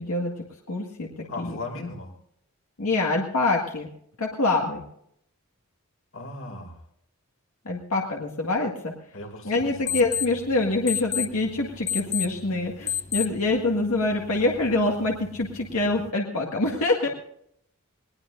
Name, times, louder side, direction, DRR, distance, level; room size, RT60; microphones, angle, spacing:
voice 1, 0.0-1.9 2.8-3.9 4.2-4.8 7.7-8.9 9.5-17.1, left 2 dB, 85° left, 0 dB, 1.9 m, -25 dB
voice 2, 1.3-2.1 6.1-6.8 9.1-10.0, left 2 dB, 60° left, 4 dB, 2.7 m, -37 dB
sound 1, 9.6-16.1, left 9 dB, 30° left, 0.5 m, -34 dB
20.5 x 19.5 x 2.6 m, 0.70 s
head